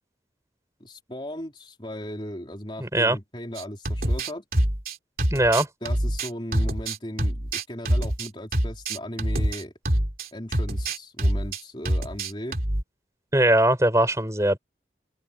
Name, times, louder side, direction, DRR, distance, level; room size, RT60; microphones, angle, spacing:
voice 1, 0.8-4.4 5.8-9.7 10.3-12.6, equal, 30° left, 4.1 m, -37 dB
voice 2, 2.8-3.2 5.3-5.7 13.3-14.6, right 1 dB, 15° right, 6.3 m, -20 dB
sound 1, 3.6-10.3 10.5-11.6 11.8-12.8, right 1 dB, 55° right, 3.3 m, -25 dB
head